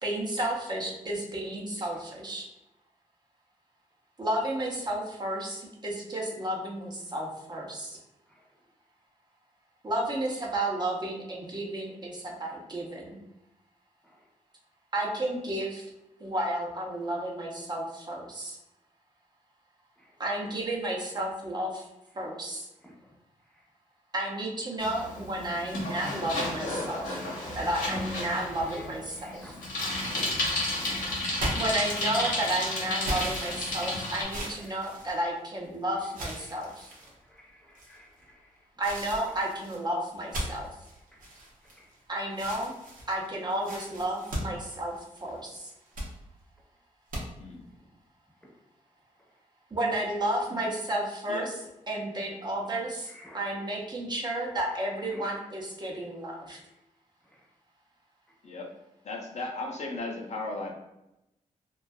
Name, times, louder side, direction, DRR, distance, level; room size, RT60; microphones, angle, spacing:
voice 1, 0.0-2.4 4.2-8.0 9.8-13.2 14.9-15.8 16.2-18.6 20.2-21.8 22.2-22.7 24.1-27.2 27.5-29.5 31.5-36.9 38.8-40.7 42.1-42.7 43.1-44.9 45.2-45.6 49.7-51.5 51.9-56.6, right 1 dB, 30° right, -2 dB, 0.6 m, -32 dB
Bicycle, 24.8-34.2, left 1 dB, 90° left, 0.8 m, -32 dB
voice 2, 29.2-29.6 33.9-34.0 34.6-34.8 36.4-36.6 37.3-38.5 41.8-41.9 48.4-48.5 53.1-53.4 55.1-55.3 57.3-57.4, equal, 5° left, -3 dB, 0.8 m, -54 dB
sound 1, 31.3-32.3 33.0-35.7 36.1-37.1 37.7-38.2 38.8-42.0 42.3-45.3 45.7-46.1 47.1-47.2, right 1 dB, 90° right, 0.6 m, -38 dB
voice 3, 59.0-60.7, left 2 dB, 55° left, 0 dB, 0.5 m, -36 dB
2.5 x 2.3 x 2.2 m, 0.89 s
cardioid pair, 70°, 14 cm